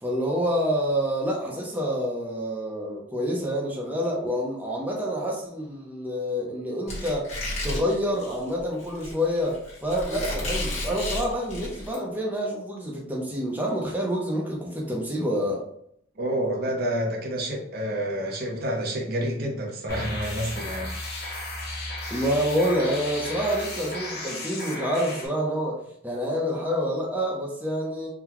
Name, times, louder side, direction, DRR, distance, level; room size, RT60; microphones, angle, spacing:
voice 1, 0.0-7.3 7.6-15.6 22.1-28.1, equal, 10° right, -3 dB, 0.6 m, -27 dB
Squeak, 6.9-12.0, left 1 dB, 35° left, 1.2 m, -33 dB
voice 2, 16.2-20.9, right 1 dB, 50° right, 1 dB, 0.7 m, -28 dB
sound 1, 19.9-25.3, left 2 dB, 50° left, 0.8 m, -34 dB
3.8 x 2.2 x 2.9 m, 0.69 s
head